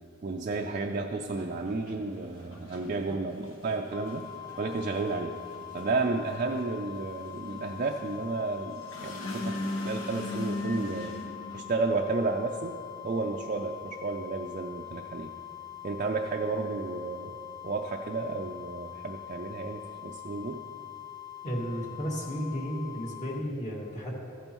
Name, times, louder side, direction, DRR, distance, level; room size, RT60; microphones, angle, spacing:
voice 1, 0.2-4.3 4.6-5.4 5.7-11.2 11.5-12.8 13.0-15.3 15.8-17.4 17.6-20.6, right 3 dB, 40° right, 2 dB, 0.4 m, -32 dB
sound 1, 1.3-11.6, left 2 dB, 80° left, 1.1 m, -39 dB
sound 2, 3.9-23.4, left 12 dB, 15° left, 0.7 m, -44 dB
voice 2, 21.4-24.1, equal, 35° left, -3 dB, 1.9 m, -33 dB
14.5 x 8.8 x 3.0 m, 2.5 s
head